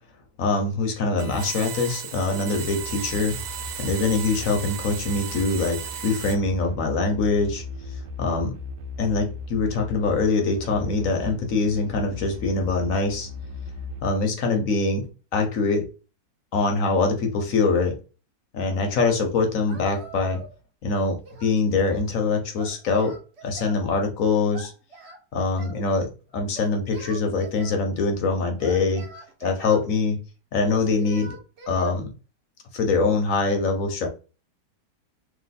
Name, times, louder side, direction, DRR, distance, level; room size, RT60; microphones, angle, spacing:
voice 1, 0.4-3.4 3.8-8.5 9.0-13.3 14.0-15.0 15.3-15.9 16.5-18.0 18.5-20.4 20.8-23.2 23.4-24.7 25.3-29.1 29.4-30.2 30.5-31.4 31.7-32.1 32.7-34.1, left 3 dB, 60° left, 1.1 m, -24 dB
sound 1, 1.2-6.3, right 9 dB, 70° right, 1.2 m, -35 dB
sound 2, 2.5-14.0, left 3 dB, 90° right, 1.3 m, -38 dB
Singing, 19.7-20.6 20.9-22.1 22.6-23.8 24.5-25.8 26.5-27.8 28.6-29.9 30.6-31.9, right 4 dB, 50° right, 0.9 m, -42 dB
3.0 x 3.0 x 4.1 m
omnidirectional pair, 1.9 m